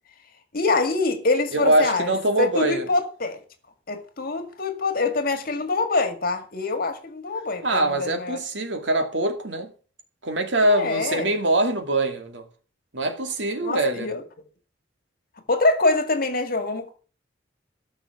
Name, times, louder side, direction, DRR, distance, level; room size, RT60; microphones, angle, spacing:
voice 1, 0.5-3.4 3.9-8.4 10.6-11.3 13.6-14.2 15.5-17.0, left 3 dB, 55° left, 2.0 m, -25 dB
voice 2, 1.5-2.9 7.6-9.7 10.2-12.4 12.9-14.1, right 1 dB, 80° right, 2.3 m, -23 dB
13.5 x 6.0 x 7.2 m
head